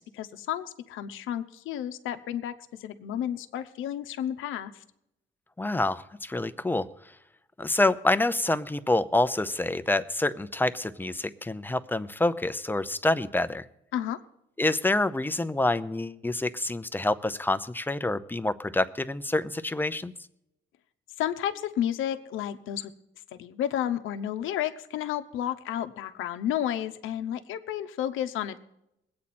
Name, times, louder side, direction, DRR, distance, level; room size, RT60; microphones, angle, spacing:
voice 1, 0.0-2.5 2.8-4.8 13.9-14.2 21.2-22.9 23.3-28.6, left 10 dB, 85° left, 9 dB, 0.8 m, -31 dB
voice 2, 5.6-6.9 7.6-13.6 14.6-20.1, left 2 dB, 10° left, 11 dB, 0.7 m, -27 dB
21.0 x 8.7 x 4.3 m, 0.82 s
cardioid pair, 90°, 20 cm